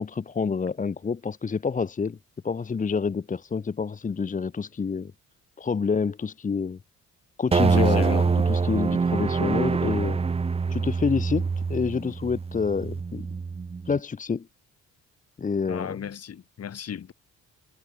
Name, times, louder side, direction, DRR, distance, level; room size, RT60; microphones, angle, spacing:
voice 1, 0.0-2.2 2.4-5.1 5.6-6.8 7.4-10.2 10.7-13.3 13.9-14.5 15.4-16.0, left 5 dB, 25° left, 0.9 m, -28 dB
sound 1, 7.5-14.0, right 5 dB, 20° right, 0.6 m, -25 dB
voice 2, 7.6-8.3 15.6-17.1, left 8 dB, 55° left, 5.4 m, -36 dB
cardioid pair, 90°, 30 cm